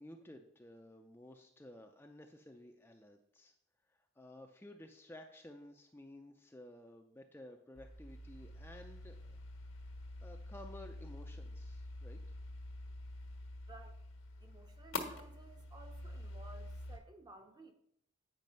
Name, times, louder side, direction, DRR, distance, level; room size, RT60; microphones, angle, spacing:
voice 1, 0.0-3.5 3.9-9.4 10.2-12.2, left 1 dB, 10° left, 0.5 m, -54 dB
sound 1, 7.7-17.0, left 2 dB, 85° left, 1.3 m, -47 dB
voice 2, 13.7-14.0 14.4-17.7, right 2 dB, 20° right, 0.8 m, -56 dB
9.2 x 5.3 x 5.4 m
head